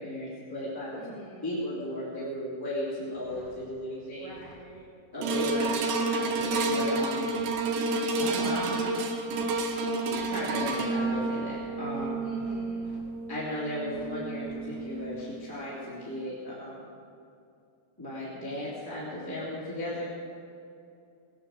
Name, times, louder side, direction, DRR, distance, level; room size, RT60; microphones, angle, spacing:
voice 1, 0.0-1.0 1.4-4.3 5.1-5.7 6.1-7.3 8.2-9.0 9.7-12.2 13.3-16.9 18.0-20.0, left 1 dB, 5° left, -8 dB, 2.0 m, -35 dB
voice 2, 1.0-1.6 4.2-4.9 12.2-12.9, right 1 dB, 55° right, -4 dB, 1.1 m, -46 dB
sound 1, 3.1-3.6 4.1-4.6 5.2-5.6 6.1-6.6 7.2-7.6 8.2-8.6 9.2-9.6 10.1-11.6 11.9-13.0 13.8-14.1 14.4-15.2, equal, 30° right, 4.5 m, -53 dB
sound 2, 5.2-15.6 16.2-16.3, right 3 dB, 75° right, 3.1 m, -30 dB
19.5 x 9.7 x 6.4 m, 2.5 s
omnidirectional pair, 5.2 m